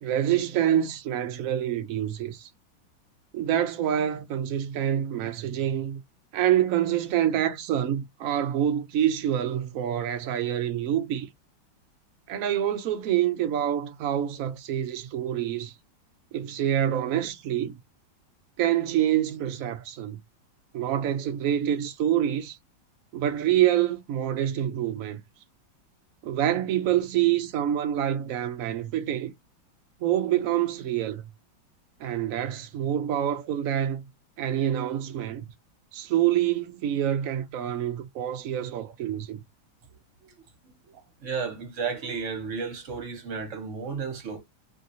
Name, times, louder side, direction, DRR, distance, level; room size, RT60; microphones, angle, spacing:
voice 1, 0.0-2.5 3.3-6.0 6.3-11.3 12.3-15.7 16.3-17.7 18.6-20.2 20.7-22.6 23.1-25.2 26.2-29.3 30.0-31.2 32.0-34.0 34.4-35.5 35.9-39.4, right 11 dB, 80° right, 0.7 m, -26 dB
voice 2, 41.2-44.4, right 5 dB, 45° right, 1.3 m, -33 dB
3.1 x 2.5 x 2.7 m
omnidirectional pair, 2.1 m